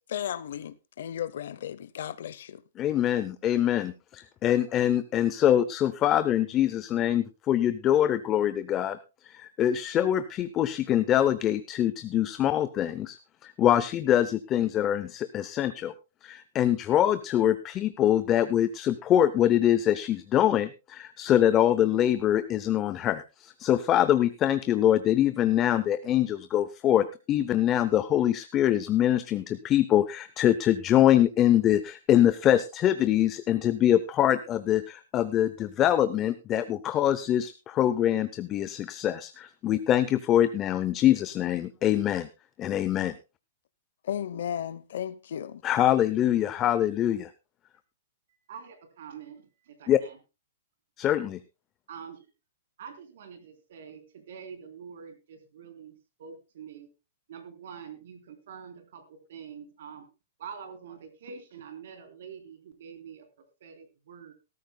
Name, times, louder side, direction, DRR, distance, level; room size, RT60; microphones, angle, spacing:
voice 1, 0.1-2.6 44.0-45.6, left 9 dB, 65° left, 0.7 m, -34 dB
voice 2, 2.8-9.0 9.2-13.2 13.4-15.9 16.2-42.3 42.6-43.1 45.6-47.3 49.9-50.0 51.0-51.4, left 11 dB, 20° left, 0.5 m, -24 dB
voice 3, 48.3-50.2 51.9-52.3 52.8-56.9 57.3-60.1 60.4-63.3 63.6-64.3, right 7 dB, 60° right, 3.7 m, -45 dB
18.5 x 13.5 x 2.2 m
hypercardioid pair, 165°, 0 cm